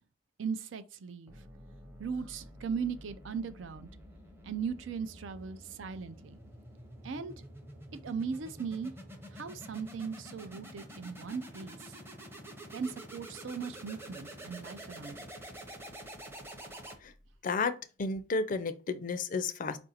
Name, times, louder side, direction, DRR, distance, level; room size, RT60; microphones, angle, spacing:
voice 1, 0.4-1.3 2.0-3.9 4.4-6.4 7.0-7.4 7.9-8.9 9.3-11.9 12.7-15.3, right 6 dB, 70° right, 0.5 m, -38 dB
sound 1, 1.3-17.4, equal, 10° right, 0.7 m, -48 dB
voice 2, 17.4-19.8, left 4 dB, 40° left, 0.4 m, -32 dB
4.6 x 2.5 x 4.2 m
head